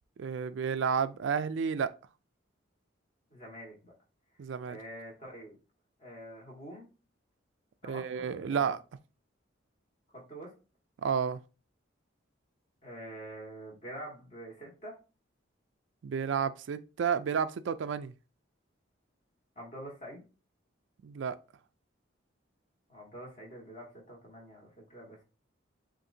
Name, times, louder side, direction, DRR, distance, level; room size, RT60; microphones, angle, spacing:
voice 1, 0.2-1.9 4.4-4.8 7.8-8.8 11.0-11.4 16.0-18.1 21.0-21.4, right 6 dB, 70° right, 0.3 m, -31 dB
voice 2, 3.3-3.9 4.6-5.6 6.0-6.9 7.8-8.7 10.1-10.5 12.8-15.0 19.6-20.2 22.9-25.2, right 1 dB, 40° left, 1.8 m, -46 dB
7.5 x 2.6 x 2.7 m
head